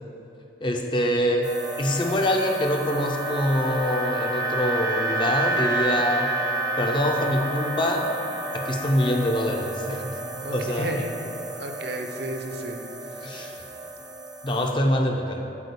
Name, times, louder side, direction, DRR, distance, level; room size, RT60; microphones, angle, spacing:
voice 1, 0.6-6.3 6.8-8.1 8.5-11.0 13.2-13.7 14.4-15.4, equal, 25° left, 2 dB, 0.6 m, -25 dB
sound 1, 1.4-14.7, right 2 dB, 20° right, 0.6 m, -30 dB
voice 2, 10.4-11.1 11.5-12.8 13.1-13.5, right 1 dB, 60° right, 3 dB, 0.8 m, -33 dB
8.4 x 4.4 x 6.9 m, 2.9 s
head